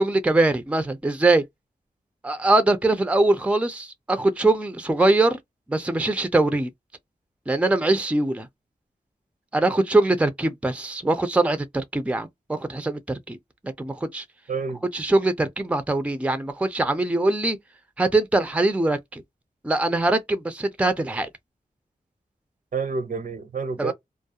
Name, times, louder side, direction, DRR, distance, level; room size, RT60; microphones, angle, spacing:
voice 1, 0.0-1.4 2.2-5.4 5.7-6.7 7.5-8.5 9.5-13.4 13.8-14.2 14.9-17.6 18.0-19.2 19.6-21.3 23.8-23.9, right 2 dB, 10° right, 0.4 m, -22 dB
voice 2, 14.5-14.8 22.7-23.9, right 4 dB, 60° right, 0.6 m, -28 dB
2.3 x 2.0 x 2.8 m
cardioid pair, 60°, 16 cm